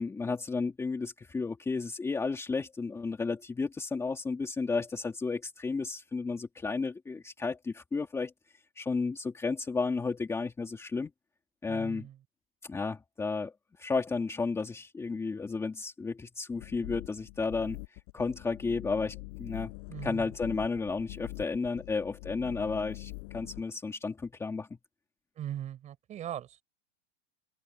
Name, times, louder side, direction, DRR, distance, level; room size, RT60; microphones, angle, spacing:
voice 1, 0.0-8.3 8.8-11.1 11.6-12.1 12.6-13.5 13.8-17.8 18.1-19.7 20.0-24.7, left 4 dB, 10° left, 2.6 m, -33 dB
voice 2, 11.7-12.2 19.9-20.3 25.4-26.6, right 11 dB, 20° right, 4.8 m, -40 dB
sound 1, 16.5-23.6, left 32 dB, 45° left, 5.1 m, -44 dB
open air
supercardioid pair, 165°, 32 cm